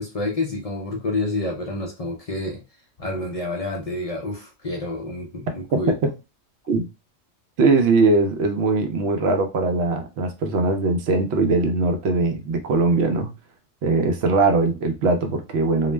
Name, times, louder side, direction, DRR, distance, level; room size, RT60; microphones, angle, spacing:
voice 1, 0.0-2.6 3.0-6.0, left 2 dB, 50° left, 0.4 m, -28 dB
voice 2, 7.6-13.3 13.8-15.9, right 3 dB, 65° right, 0.8 m, -20 dB
2.4 x 2.0 x 3.2 m
omnidirectional pair, 1.3 m